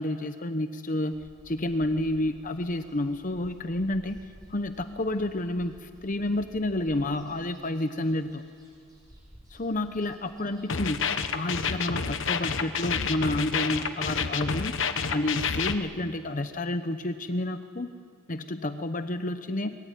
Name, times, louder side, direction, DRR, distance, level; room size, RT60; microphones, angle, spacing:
voice 1, 0.0-4.2 4.5-8.4 9.5-14.8 15.1-17.9 18.3-19.7, left 1 dB, 35° left, 9 dB, 0.8 m, -30 dB
sound 1, 1.1-11.7, equal, 20° right, 7.1 m, -54 dB
sound 2, 10.7-15.7, left 6 dB, 60° left, 1.1 m, -29 dB
24.0 x 21.0 x 9.1 m, 2.2 s
head